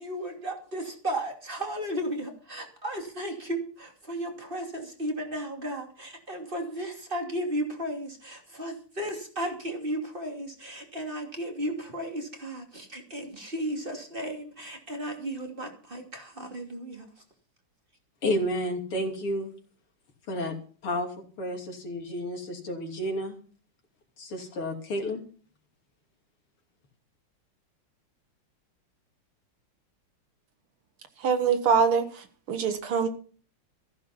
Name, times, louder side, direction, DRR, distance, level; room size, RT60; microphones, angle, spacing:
voice 1, 0.0-17.1, right 1 dB, 25° right, 2 dB, 2.8 m, -34 dB
voice 2, 18.2-19.5 20.3-20.5 20.8-21.1 21.4-23.4 24.2-25.2, left 1 dB, 85° left, 2 dB, 3.8 m, -31 dB
voice 3, 31.2-32.0 32.5-33.1, right 6 dB, 80° right, 8 dB, 2.5 m, -23 dB
15.0 x 10.5 x 5.7 m, 0.42 s
omnidirectional pair, 2.4 m